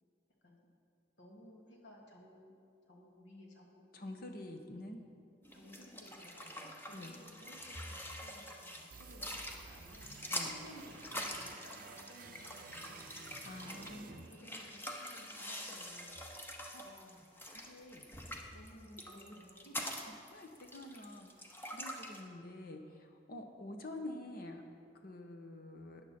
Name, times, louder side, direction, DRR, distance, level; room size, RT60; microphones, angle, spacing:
voice 1, 1.2-2.5 2.9-3.8 4.8-5.1 5.5-13.0 13.6-16.2 16.8-17.3 18.5-19.9, equal, 80° left, -2 dB, 2.3 m, -57 dB
voice 2, 3.9-5.0 6.9-7.1 10.3-10.5 13.4-14.3 16.7-16.8 17.7-18.0 18.9-19.4 20.3-21.3 21.7-24.6 25.0-26.0, left 1 dB, 55° left, 5 dB, 1.1 m, -47 dB
sound 1, 5.4-22.2, left 1 dB, 10° left, 0.9 m, -45 dB
sound 2, 8.9-14.9, right 5 dB, 50° right, 0.5 m, -54 dB
14.0 x 9.7 x 4.4 m, 2.4 s
head